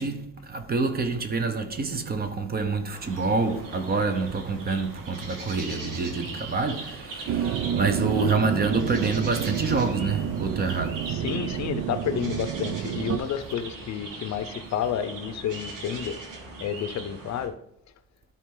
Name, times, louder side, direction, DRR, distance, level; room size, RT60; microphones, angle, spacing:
voice 1, 0.0-11.2, right 4 dB, 30° right, 0.8 m, -27 dB
sound 1, 2.9-17.5, right 3 dB, 80° right, 2.1 m, -40 dB
sound 2, 7.3-13.2, right 9 dB, 55° right, 0.5 m, -29 dB
voice 2, 11.1-16.2 16.6-17.5, left 9 dB, 55° left, 0.6 m, -30 dB
12.5 x 4.4 x 3.8 m
cardioid pair, 160°, 32 cm